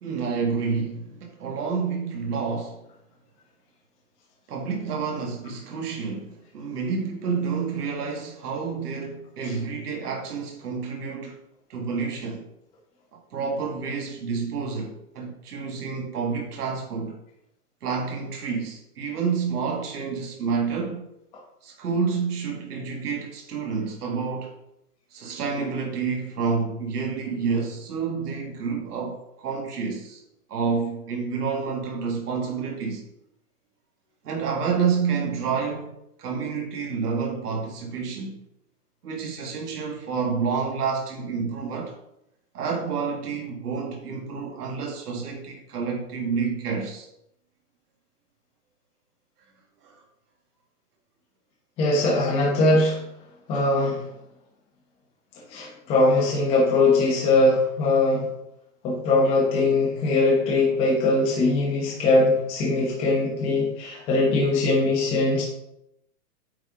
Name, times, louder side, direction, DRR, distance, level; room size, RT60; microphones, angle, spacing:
voice 1, 0.0-2.8 4.5-11.4 11.7-12.5 13.3-17.2 17.8-21.0 21.6-24.5 25.1-30.2 30.5-33.0 34.2-35.9 36.2-38.4 39.0-41.9 42.5-47.1 49.8-50.0, right 5 dB, 75° right, 1 dB, 1.9 m, -29 dB
voice 2, 51.8-53.0 53.5-54.0 55.5-58.2 58.8-65.4, left 2 dB, 10° left, -4 dB, 0.9 m, -21 dB
8.6 x 4.2 x 3.7 m, 0.80 s
hypercardioid pair, 165°, 47 cm